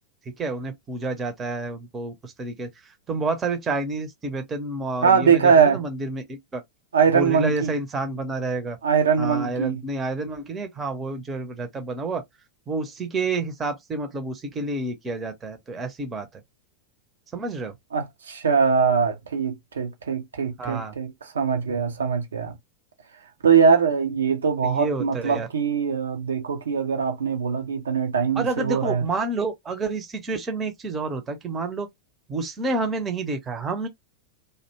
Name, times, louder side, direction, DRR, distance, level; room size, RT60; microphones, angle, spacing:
voice 1, 0.4-2.7 3.1-6.6 7.1-8.8 9.2-12.2 12.7-16.3 17.3-17.7 20.6-21.0 24.6-25.5 28.4-31.9 32.3-33.9, right 3 dB, 20° right, 0.7 m, -29 dB
voice 2, 5.0-5.8 6.9-7.7 8.8-9.8 17.9-22.5 23.4-29.1, right 6 dB, 70° right, 0.5 m, -22 dB
2.6 x 2.1 x 2.7 m
figure-of-eight pair, 90°, 0 cm